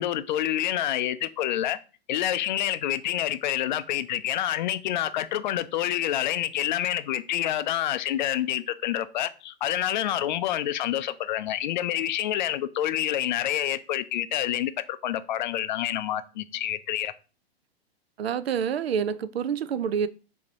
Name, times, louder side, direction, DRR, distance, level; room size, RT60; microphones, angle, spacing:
voice 1, 0.0-1.8 2.1-17.1, left 12 dB, 50° left, 0.4 m, -28 dB
voice 2, 18.2-20.1, right 7 dB, 70° right, 0.5 m, -27 dB
6.5 x 2.8 x 2.7 m
figure-of-eight pair, 110°, 32 cm